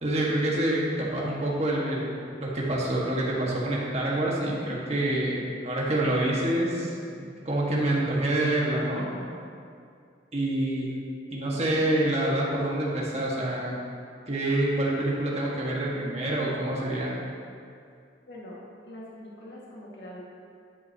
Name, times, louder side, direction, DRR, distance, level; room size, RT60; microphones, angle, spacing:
voice 1, 0.0-9.0 10.3-10.9 11.3-13.7 14.3-17.1, right 1 dB, 35° right, -4 dB, 1.6 m, -27 dB
voice 2, 18.8-20.2, left 1 dB, 75° left, -6 dB, 1.9 m, -43 dB
12.0 x 8.5 x 2.9 m, 2.3 s
head